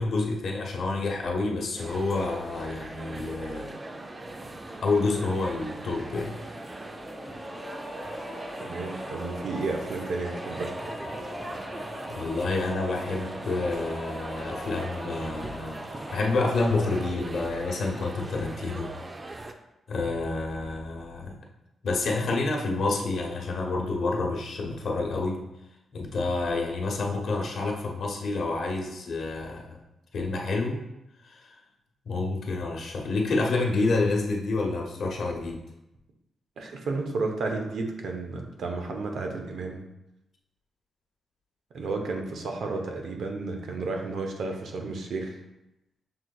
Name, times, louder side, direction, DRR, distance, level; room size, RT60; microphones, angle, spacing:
voice 1, 0.0-3.7 4.8-6.3 12.1-15.8 16.1-18.9 19.9-21.3 21.8-25.4 25.9-29.8 30.1-30.8 31.2-31.5 32.1-35.6, left 3 dB, 65° left, 0 dB, 0.9 m, -28 dB
sound 1, 1.8-19.5, right 2 dB, 25° right, 0.4 m, -41 dB
sound 2, 2.8-17.1, equal, 10° right, 1.3 m, -40 dB
voice 2, 8.6-10.7 36.6-39.8 41.7-45.3, right 3 dB, 70° right, 3 dB, 0.7 m, -32 dB
6.1 x 3.7 x 2.3 m, 0.91 s
cardioid pair, 85°, 0 cm